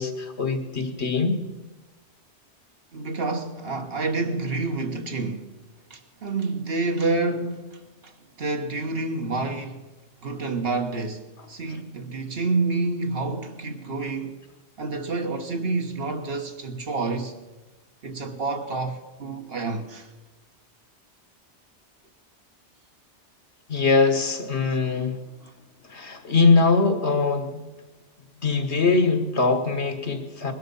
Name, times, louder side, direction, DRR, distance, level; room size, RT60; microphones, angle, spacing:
voice 1, 0.0-1.4 23.7-25.2 25.9-27.6 28.4-30.5, left 4 dB, 70° left, 1.8 m, -22 dB
voice 2, 2.9-5.5 5.9-8.1 8.4-9.8 10.2-14.4 14.8-17.4 18.0-20.1, right 3 dB, 60° right, 1.5 m, -28 dB
20.5 x 12.0 x 5.5 m
omnidirectional pair, 1.2 m